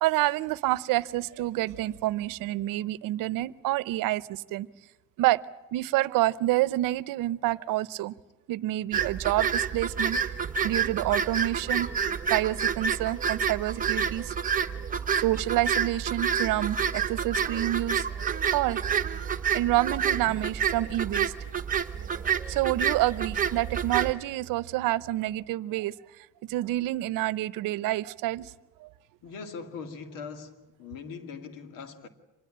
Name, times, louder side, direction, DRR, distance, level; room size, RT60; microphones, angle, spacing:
voice 1, 0.0-4.7 5.2-5.4 5.7-8.1 8.5-10.2 10.6-11.9 12.3-14.3 15.2-18.1 18.5-18.8 19.5-21.3 22.5-25.9 26.4-28.5 28.8-28.9, right 16 dB, 90° right, 0.8 m, -28 dB
sound 1, 8.9-24.1, right 7 dB, 25° right, 1.1 m, -29 dB
voice 2, 29.2-32.1, left 5 dB, 90° left, 2.4 m, -41 dB
26.0 x 20.5 x 8.7 m
cardioid pair, 155°, 32 cm